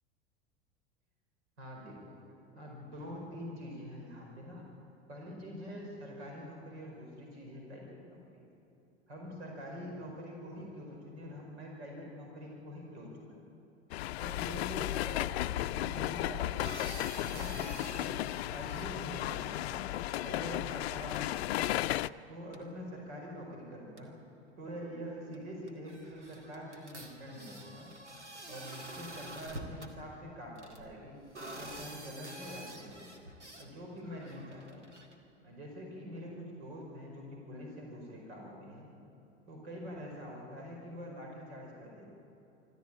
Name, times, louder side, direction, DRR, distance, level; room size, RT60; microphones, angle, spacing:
voice 1, 1.6-2.2 2.5-4.7 5.1-8.4 9.1-13.4 14.2-16.7 17.2-18.2 18.5-21.7 22.3-24.1 24.6-27.9 28.5-31.2 31.5-33.1 33.6-34.8 35.4-38.9 39.5-42.1, equal, 70° right, 0 dB, 4.9 m, -45 dB
sound 1, 13.9-22.1, left 15 dB, 65° left, 0.5 m, -34 dB
sound 2, 16.4-20.3 20.7-20.9 21.2-21.5 22.5-22.6 23.6-23.7 24.0-24.1 25.3-25.4 25.7-29.9 30.6-33.7 34.0-35.2, right 1 dB, 90° right, 2.2 m, -48 dB
25.5 x 13.5 x 8.8 m, 2.9 s
figure-of-eight pair, 85°, 34 cm